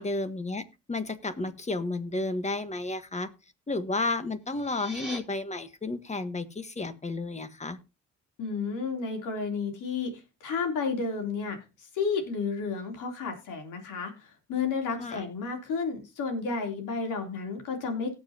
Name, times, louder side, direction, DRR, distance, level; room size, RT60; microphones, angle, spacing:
voice 1, 0.0-3.3 3.7-7.8 15.0-15.2, left 2 dB, 25° left, 11 dB, 1.4 m, -32 dB
sound 1, 4.4-5.2, right 1 dB, ahead, 3.9 m, -41 dB
voice 2, 8.4-10.1 10.4-11.6 11.9-18.2, left 5 dB, 85° left, 3 dB, 3.4 m, -31 dB
18.0 x 7.5 x 2.9 m, 0.28 s
cardioid pair, 90°, 30 cm